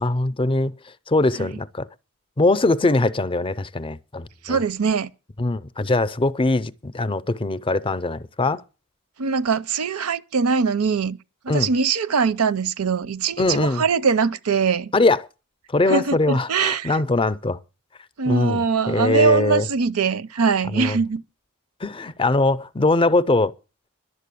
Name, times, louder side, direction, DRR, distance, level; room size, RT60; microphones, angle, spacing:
voice 1, 0.0-0.7 1.1-1.9 2.4-4.6 5.4-8.6 11.5-11.7 13.4-13.8 14.9-15.3 15.7-17.6 18.3-19.7 20.7-21.0 21.8-23.5, left 2 dB, 25° left, 0.5 m, -21 dB
voice 2, 4.4-5.1 9.2-11.2 11.4-14.9 15.9-17.0 18.2-21.2, right 5 dB, 80° right, 0.6 m, -22 dB
11.0 x 7.4 x 8.4 m
head